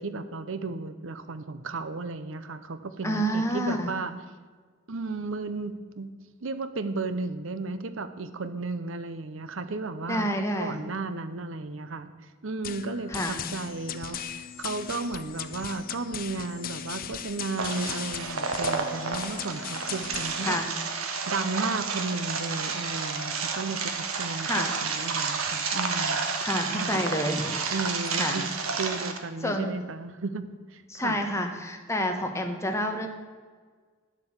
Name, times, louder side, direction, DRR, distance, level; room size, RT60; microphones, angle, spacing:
voice 1, 0.0-4.1 4.9-6.1 6.4-10.3 10.6-12.1 12.4-20.6 21.3-26.2 26.7-27.1 27.7-28.4 28.8-30.5 30.7-31.2, right 3 dB, 65° right, 11 dB, 0.7 m, -34 dB
voice 2, 3.0-3.9 10.1-10.7 13.1-13.4 20.4-20.7 24.4-24.8 26.4-27.5 28.2-28.4 29.4-29.7 30.9-33.1, equal, 15° left, 4 dB, 1.2 m, -28 dB
sound 1, 12.6-20.6, left 9 dB, 40° left, 0.6 m, -38 dB
sound 2, 17.6-29.2, right 5 dB, 80° right, 1.4 m, -31 dB
11.0 x 8.0 x 7.3 m, 1.5 s
head